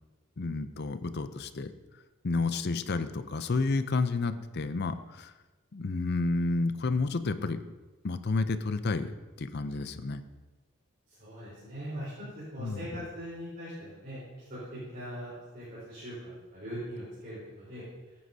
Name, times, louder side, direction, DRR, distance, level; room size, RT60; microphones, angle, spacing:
voice 1, 0.4-1.7 2.2-5.3 5.7-7.6 8.0-9.1 9.4-10.2 12.6-12.9, left 3 dB, 50° left, 11 dB, 0.5 m, -30 dB
voice 2, 11.1-14.2 14.5-17.8, equal, 45° right, -11 dB, 4.0 m, -41 dB
14.5 x 9.3 x 2.8 m, 1.2 s
head